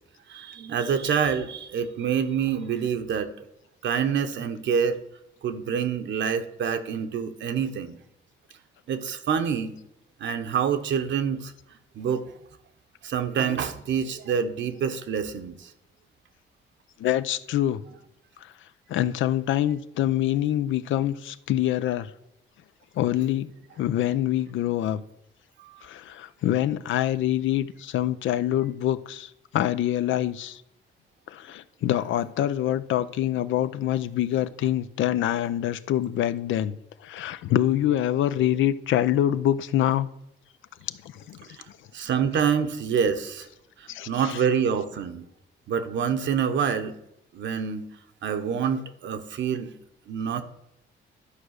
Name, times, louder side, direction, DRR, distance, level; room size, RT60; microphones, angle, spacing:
voice 1, 0.3-3.5 3.8-5.0 5.4-8.0 8.9-9.8 10.2-11.5 11.9-12.3 13.0-15.7 25.6-25.8 41.5-41.6 41.9-43.5 43.8-45.3 45.7-47.0 47.3-47.8 48.2-49.7 50.1-50.4, right 7 dB, 65° right, 1.1 m, -27 dB
voice 2, 17.0-17.8 18.9-22.1 23.0-23.5 23.8-25.0 25.8-30.6 31.3-36.8 37.0-40.1 41.0-41.5 43.9-44.4, left 12 dB, 75° left, 0.6 m, -25 dB
11.5 x 5.0 x 6.5 m
cardioid pair, 90°, 20 cm